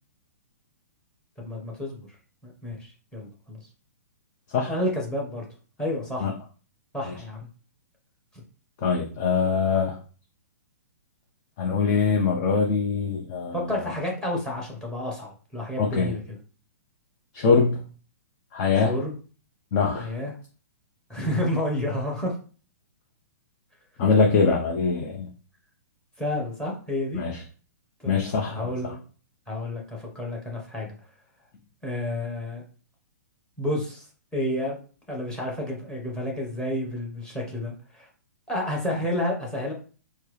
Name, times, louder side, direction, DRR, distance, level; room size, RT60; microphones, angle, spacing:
voice 1, 1.4-2.0 2.4-3.6 4.7-5.5 5.8-6.3 6.9-7.4 13.5-16.4 18.8-19.1 20.0-20.3 21.1-22.3 26.2-27.2 28.0-28.2 28.5-29.0 29.5-30.9 31.8-32.6 33.6-34.0 34.3-34.8 35.1-38.1 38.5-39.7, left 1 dB, 10° left, 0 dB, 1.3 m, -30 dB
voice 2, 8.8-10.0 11.6-13.6 15.8-16.1 17.3-17.8 18.5-18.9 19.7-20.1 24.0-25.3 27.2-27.4 28.0-28.9, left 5 dB, 40° left, 1 dB, 0.6 m, -23 dB
4.4 x 2.0 x 3.2 m, 0.39 s
figure-of-eight pair, 120°, 9 cm